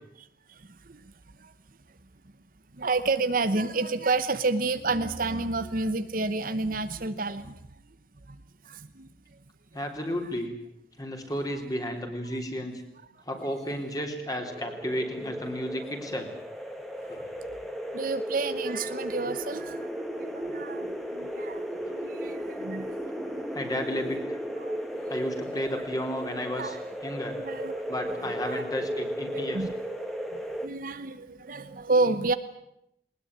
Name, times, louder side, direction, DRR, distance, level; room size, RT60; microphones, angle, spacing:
voice 1, 2.8-7.6 8.3-8.4 8.6-9.1 10.2-10.3 17.9-19.9 20.2-21.6 21.9-23.0 23.9-24.0 24.6-24.8 25.1-25.2 25.5-25.6 26.6-26.8 27.4-27.8 28.4-28.6 28.9-29.0 29.3-29.7 30.3-32.3, right 3 dB, 50° right, 11 dB, 1.0 m, -30 dB
voice 2, 9.7-10.5 11.0-12.7 13.3-16.3 17.1-17.2 23.5-24.4 25.1-26.8 27.0-27.4 27.9-29.6, equal, 20° left, 4 dB, 3.5 m, -32 dB
sound 1, 14.4-30.7, equal, ahead, 2.1 m, -35 dB
20.5 x 20.0 x 9.5 m, 0.81 s
head